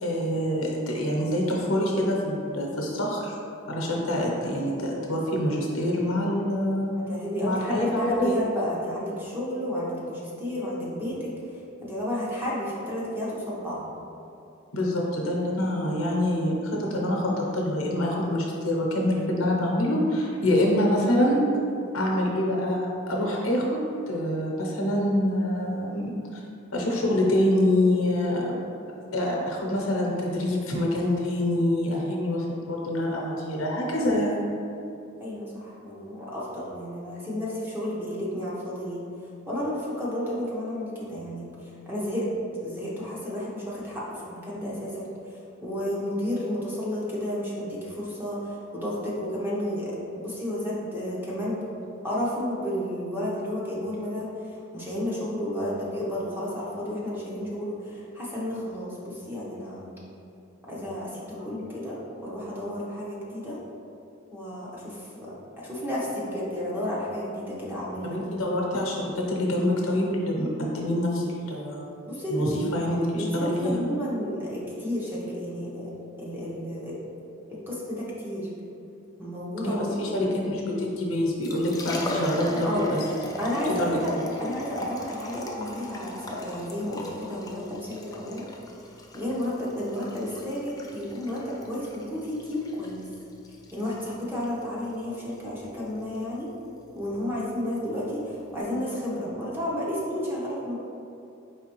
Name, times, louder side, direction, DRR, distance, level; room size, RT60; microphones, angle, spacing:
voice 1, 0.0-3.3 3.7-7.0 7.4-8.4 14.7-21.4 21.9-23.8 24.1-26.4 26.7-28.6 29.1-34.3 61.4-61.5 68.0-71.8 72.3-73.8 79.6-83.1 83.8-84.3, left 1 dB, 80° left, -2 dB, 0.9 m, -26 dB
voice 2, 7.0-11.3 11.8-13.9 35.2-39.0 39.5-42.3 42.6-45.1 45.6-54.3 54.7-59.9 60.7-63.6 64.3-68.2 72.0-72.7 73.2-75.9 76.2-77.0 77.5-78.5 79.2-80.3 82.6-82.9 83.4-88.5 89.1-93.1 93.7-96.5 96.9-100.7, left 1 dB, 10° right, -7 dB, 0.8 m, -32 dB
Liquid, 81.4-98.6, left 1 dB, 20° left, 0.3 m, -39 dB
4.8 x 3.4 x 3.0 m, 2.7 s
head